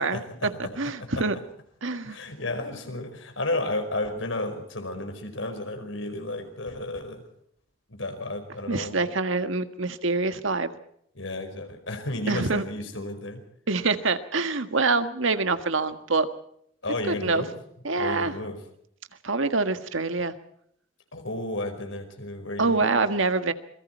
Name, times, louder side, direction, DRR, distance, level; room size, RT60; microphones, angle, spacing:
voice 1, 0.0-0.7 1.0-1.4 2.0-7.2 7.9-9.0 11.1-13.4 16.8-17.6 18.0-18.6 21.1-23.0, left 2 dB, 75° left, 7 dB, 5.0 m, -33 dB
voice 2, 0.6-1.3 1.8-2.2 8.7-10.7 12.3-12.6 13.7-16.3 17.1-17.4 17.8-18.3 19.2-20.3 22.6-23.5, right 3 dB, 75° right, 9 dB, 1.7 m, -25 dB
27.5 x 22.0 x 4.5 m, 0.70 s
head